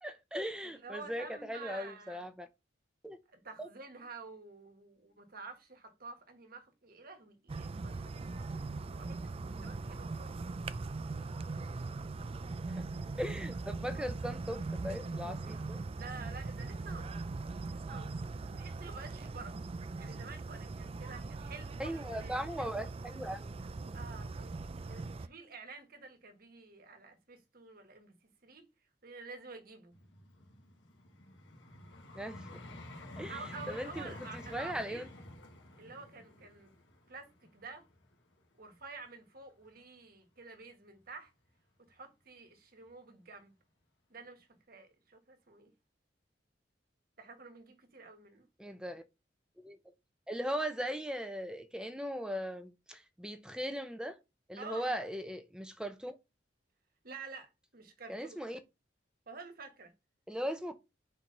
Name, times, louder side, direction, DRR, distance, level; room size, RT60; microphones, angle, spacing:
voice 1, 0.0-2.5 3.0-3.2 3.6-3.7 12.7-12.9 13.2-15.8 21.8-23.6 32.1-32.6 33.2-33.4 33.7-35.1 48.6-49.0 49.6-49.8 50.3-54.2 54.5-56.2 58.1-58.6 60.3-60.7, equal, 5° right, 0.8 m, -39 dB
voice 2, 0.6-2.3 3.3-9.4 9.6-10.4 16.0-17.3 17.7-19.7 20.0-22.7 23.9-28.7 29.0-29.9 33.3-35.1 35.8-36.7 37.1-37.9 38.6-41.3 41.8-43.5 44.1-45.7 47.2-48.5 54.6-54.9 57.0-58.4 59.3-59.9, right 4 dB, 55° right, 1.5 m, -50 dB
sound 1, 7.5-25.3, right 3 dB, 30° right, 0.4 m, -40 dB
Vehicle, 29.9-39.0 39.6-39.8, left 1 dB, 85° left, 1.5 m, -50 dB
4.7 x 4.2 x 5.3 m
head